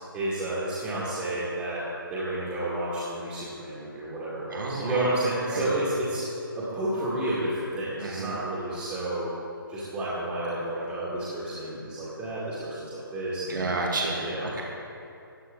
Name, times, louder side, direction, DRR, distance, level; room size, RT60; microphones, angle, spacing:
voice 1, 0.1-1.8 2.1-6.2 6.5-9.3 9.7-13.7 14.2-14.5, right 1 dB, 15° right, -10 dB, 2.2 m, -31 dB
voice 2, 4.5-5.1 5.5-5.7 8.0-8.4 13.5-14.6, right 3 dB, 60° right, -1 dB, 1.9 m, -31 dB
14.5 x 9.7 x 3.9 m, 2.7 s
figure-of-eight pair, 145°, 12 cm